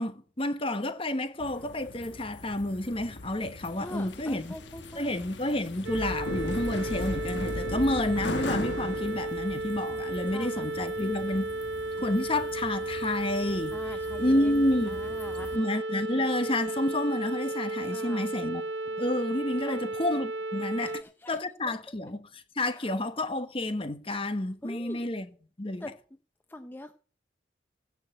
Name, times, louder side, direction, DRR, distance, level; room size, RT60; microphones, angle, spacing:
voice 1, 0.0-4.6 4.9-11.6 12.0-15.0 15.5-18.6 19.0-25.3 25.6-25.9, left 1 dB, 30° left, 1.2 m, -30 dB
sound 1, 1.4-15.6, left 2 dB, 70° left, 1.3 m, -39 dB
voice 2, 3.8-5.2 10.3-10.7 13.7-14.5 14.9-15.6 17.8-18.3 19.7-19.9 20.8-21.4 22.6-22.9 24.6-25.0 25.8-25.9 26.5-26.9, left 1 dB, 10° left, 0.6 m, -43 dB
sound 2, 5.8-21.0, right 2 dB, 75° right, 0.8 m, -34 dB
16.0 x 6.2 x 7.8 m
head